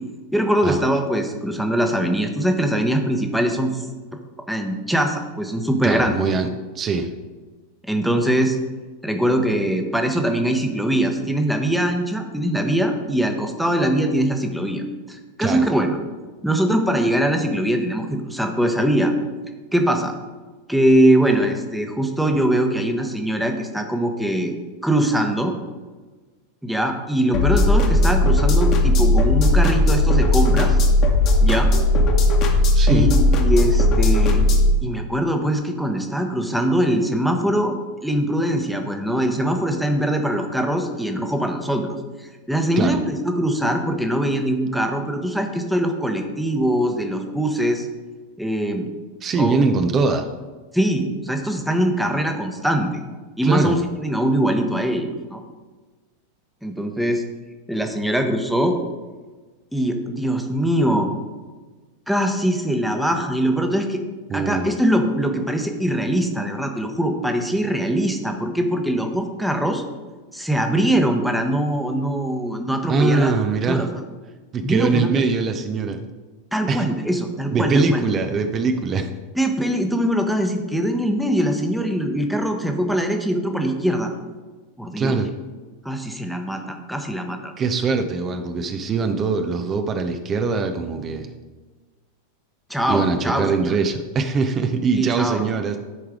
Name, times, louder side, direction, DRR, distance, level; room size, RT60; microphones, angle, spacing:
voice 1, 0.3-3.8 4.5-6.1 7.8-8.6 9.0-14.8 15.1-16.0 16.4-19.1 19.7-20.1 20.7-24.5 24.8-25.5 26.6-30.8 31.4-31.7 32.9-34.4 34.8-37.7 38.0-41.9 42.5-47.9 48.4-48.9 49.4-49.6 50.7-52.9 53.4-55.4 56.6-57.2 57.7-58.8 59.7-61.1 62.1-64.0 64.3-69.8 70.3-73.3 73.7-73.9 74.6-75.1 76.5-78.0 79.3-84.1 84.8-85.2 85.8-87.5 92.7-93.8 95.0-95.4, right 1 dB, ahead, 4 dB, 1.0 m, -22 dB
voice 2, 5.8-7.1 15.4-15.7 32.7-33.1 42.8-43.0 49.2-50.3 53.4-53.8 64.3-64.7 72.9-73.9 74.5-76.1 76.7-76.9 77.5-79.1 85.0-85.3 87.6-91.3 92.9-95.8, right 4 dB, 25° right, 7 dB, 0.6 m, -22 dB
sound 1, 27.3-34.7, left 1 dB, 35° left, 1.4 m, -16 dB
11.0 x 4.7 x 4.8 m, 1.3 s
figure-of-eight pair, 90°, 0 cm